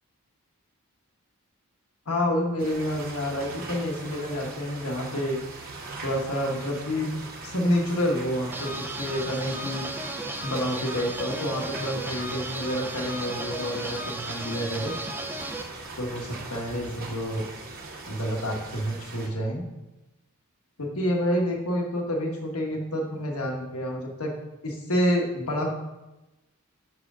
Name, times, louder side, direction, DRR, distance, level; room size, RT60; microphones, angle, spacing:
voice 1, 2.1-5.4 6.0-7.1 7.4-9.8 10.4-15.0 16.0-17.4 18.1-19.6 20.8-24.3 24.6-25.7, equal, 75° left, 0 dB, 1.3 m, -28 dB
sound 1, 2.6-19.3, right 3 dB, 45° right, 1.3 m, -41 dB
sound 2, 8.5-15.6, right 2 dB, 10° right, 0.5 m, -35 dB
5.8 x 4.8 x 6.1 m, 1.0 s
head